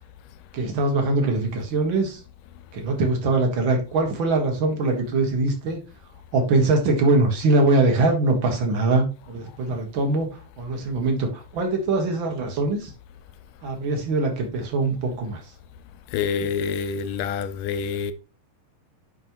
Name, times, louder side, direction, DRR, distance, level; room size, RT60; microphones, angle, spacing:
voice 1, 0.5-2.2 2.7-5.8 6.3-12.9 13.6-15.4, right 2 dB, 45° right, 1.8 m, -22 dB
voice 2, 16.1-18.1, left 6 dB, 80° left, 2.0 m, -27 dB
11.0 x 4.4 x 3.0 m
omnidirectional pair, 4.1 m